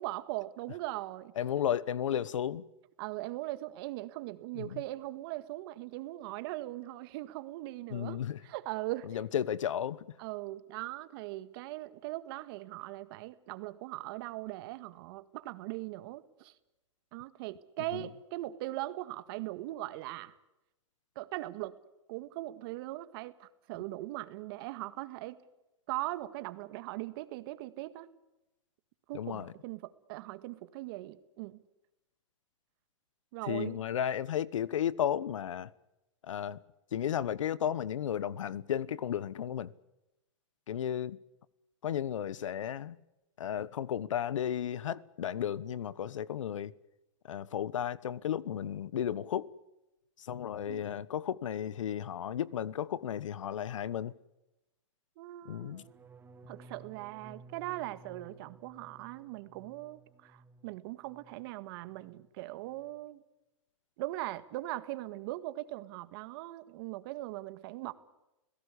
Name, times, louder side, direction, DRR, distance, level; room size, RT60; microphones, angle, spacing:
voice 1, 0.0-1.3 3.0-9.2 10.2-16.5 17.1-20.3 21.2-21.8 22.1-25.4 25.9-28.1 29.1-31.6 33.3-33.8 50.7-50.8 55.2-56.0 56.5-63.2 64.0-67.9, right 17 dB, 50° right, 1.7 m, -40 dB
voice 2, 1.4-2.6 4.6-4.8 7.9-8.4 9.1-10.2 17.9-18.1 29.1-29.5 33.5-35.7 36.2-36.6 36.9-39.7 40.7-41.2 41.8-43.0 43.4-46.7 47.2-49.5 50.2-54.1 55.4-55.8, left 9 dB, 80° left, 1.1 m, -34 dB
sound 1, 55.6-61.5 61.8-62.3 62.6-63.0, right 3 dB, 15° right, 1.2 m, -56 dB
29.5 x 17.0 x 8.4 m
hypercardioid pair, 135°, 16 cm